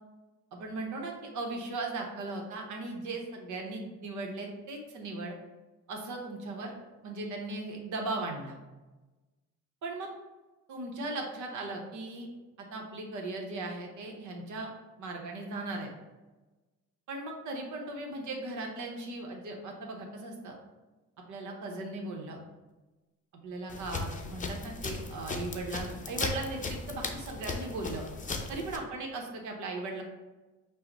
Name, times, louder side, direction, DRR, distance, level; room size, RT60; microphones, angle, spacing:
voice 1, 0.5-5.3 5.9-6.7 7.0-8.6 9.8-10.1 10.7-12.3 12.6-14.7 15.0-15.9 17.1-20.6 21.3-22.4 23.4-28.0 28.5-30.0, right 2 dB, 75° right, 1 dB, 1.0 m, -38 dB
sound 1, 23.7-28.8, left 3 dB, 25° left, 0.6 m, -37 dB
5.5 x 2.1 x 4.1 m, 1.2 s
cardioid pair, 90°, 30 cm